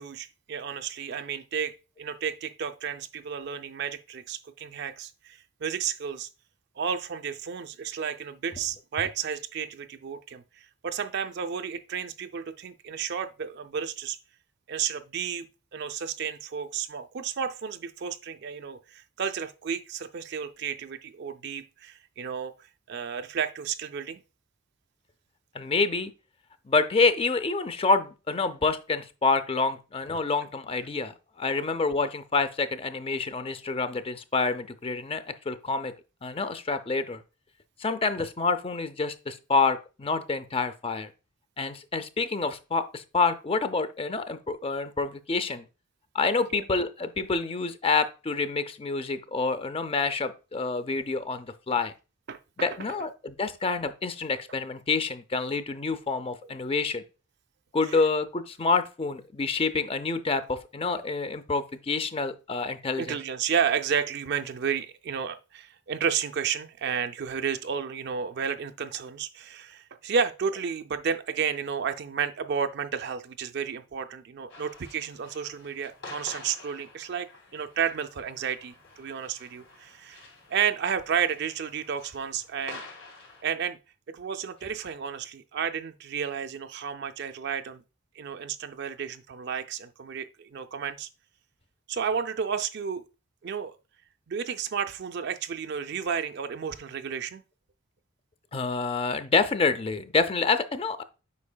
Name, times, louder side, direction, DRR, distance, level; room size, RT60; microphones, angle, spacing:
voice 1, 0.0-6.3 6.8-10.4 10.8-14.2 14.7-15.5 15.7-22.5 22.9-24.2 46.5-46.6 52.3-52.7 63.0-77.3 77.5-80.2 80.5-82.8 83.4-83.8 84.1-87.8 88.2-91.1 91.9-93.0 93.4-93.7 94.3-97.4, right 7 dB, 55° right, 0.4 m, -32 dB
voice 2, 25.5-26.1 26.7-35.9 36.2-37.2 37.8-41.1 41.6-45.6 46.1-51.9 52.6-57.0 57.7-63.2 98.5-101.0, left 4 dB, 25° left, 0.5 m, -27 dB
sound 1, 74.5-83.4, left 3 dB, 65° left, 2.9 m, -48 dB
8.4 x 5.3 x 2.2 m
head